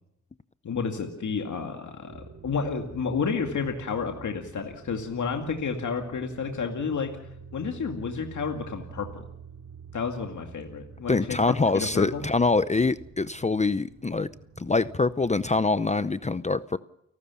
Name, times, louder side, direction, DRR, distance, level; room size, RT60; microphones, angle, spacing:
voice 1, 0.6-7.1 7.5-9.2 9.9-11.4 11.7-12.2, left 5 dB, 85° left, 3 dB, 2.3 m, -31 dB
sound 1, 2.1-15.7, right 4 dB, 85° right, 3.7 m, -47 dB
voice 2, 11.1-14.3 14.6-16.8, left 3 dB, 25° left, 14 dB, 0.7 m, -24 dB
30.0 x 12.5 x 7.0 m, 0.80 s
cardioid pair, 70°, 29 cm